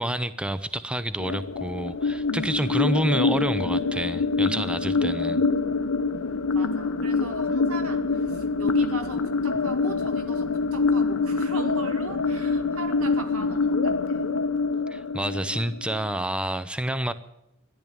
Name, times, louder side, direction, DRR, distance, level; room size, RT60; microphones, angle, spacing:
voice 1, 0.0-5.4 14.9-17.1, right 1 dB, 5° right, 13 dB, 0.5 m, -28 dB
sound 1, 1.2-16.2, left 4 dB, 75° left, 1.0 m, -25 dB
voice 2, 6.5-14.3, right 2 dB, 85° right, 6 dB, 2.2 m, -39 dB
14.0 x 10.5 x 8.8 m, 0.86 s
head